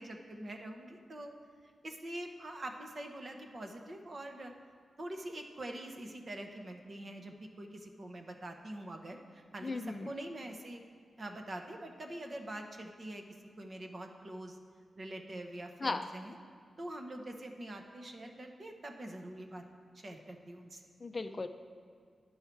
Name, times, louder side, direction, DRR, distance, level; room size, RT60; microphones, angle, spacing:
voice 1, 0.0-1.3 1.8-4.5 5.0-10.8 11.2-13.2 13.6-14.6 14.9-16.3 16.8-19.6 19.9-20.9, right 1 dB, 45° right, 4 dB, 0.9 m, -44 dB
voice 2, 9.6-10.1 15.8-16.1 21.0-21.5, left 3 dB, 35° left, 9 dB, 0.4 m, -36 dB
10.5 x 5.5 x 4.5 m, 2.1 s
cardioid pair, 90°, 0 cm